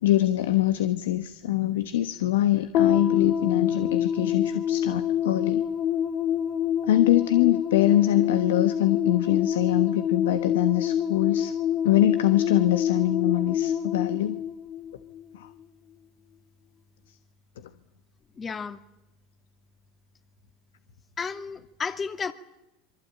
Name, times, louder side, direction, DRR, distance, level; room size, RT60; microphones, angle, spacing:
voice 1, 0.0-5.6 6.8-11.5 11.8-14.4 15.3-15.5, left 13 dB, 80° left, 11 dB, 1.3 m, -24 dB
sound 1, 2.7-15.3, left 9 dB, 55° left, 2.1 m, -26 dB
voice 2, 18.4-18.8 21.2-22.3, left 5 dB, 25° left, 9 dB, 2.3 m, -32 dB
26.5 x 23.5 x 8.9 m, 0.93 s
hypercardioid pair, 95°, 0 cm